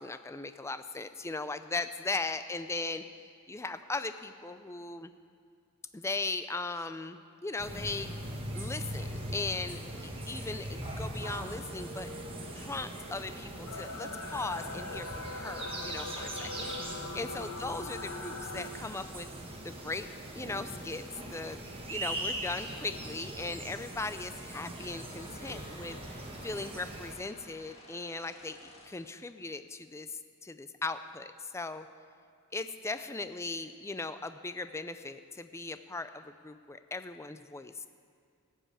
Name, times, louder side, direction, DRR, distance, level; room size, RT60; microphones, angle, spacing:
voice 1, 0.0-3.0 3.5-5.1 5.9-8.1 8.5-9.8 10.3-12.1 12.6-19.3 19.6-21.6 21.9-26.0 26.4-28.6 28.9-31.9 32.5-37.9, left 3 dB, 15° left, 11 dB, 0.4 m, -38 dB
sound 1, 7.6-27.1, right 1 dB, 25° right, 1.4 m, -41 dB
sound 2, 13.7-18.7, left 3 dB, 90° left, 1.3 m, -41 dB
sound 3, 24.8-29.2, left 2 dB, 30° left, 1.6 m, -55 dB
14.5 x 5.5 x 8.7 m, 2.3 s
head